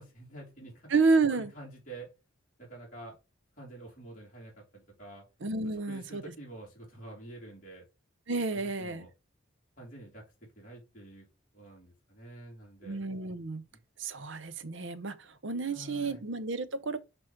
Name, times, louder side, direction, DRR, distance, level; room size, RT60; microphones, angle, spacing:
voice 1, 0.0-0.9 1.3-2.1 2.6-3.2 3.6-5.2 5.7-7.8 8.5-9.1 9.8-10.2 10.6-11.2 11.5-13.0 13.7-13.8 15.7-16.2, right 2 dB, 40° left, 2.8 m, -48 dB
voice 2, 0.9-1.5 5.4-6.2 8.3-9.1 12.8-13.6 14.0-17.0, right 4 dB, 65° right, 0.7 m, -30 dB
6.3 x 3.0 x 5.8 m
head